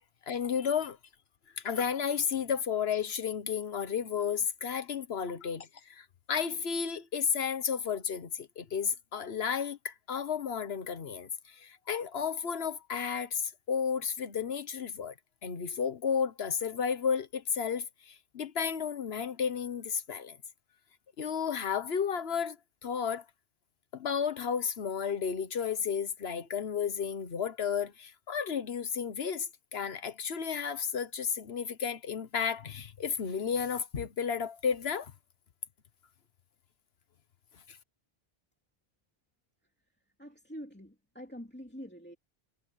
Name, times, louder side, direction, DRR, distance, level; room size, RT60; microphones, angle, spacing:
voice 1, 0.3-1.0 1.5-15.1 15.4-20.4 21.2-22.6 22.8-23.2 23.9-35.1 37.7-37.8, left 7 dB, 80° left, 1.4 m, -32 dB
voice 2, 40.2-42.2, equal, 10° left, 2.7 m, -45 dB
omnidirectional pair, 1.1 m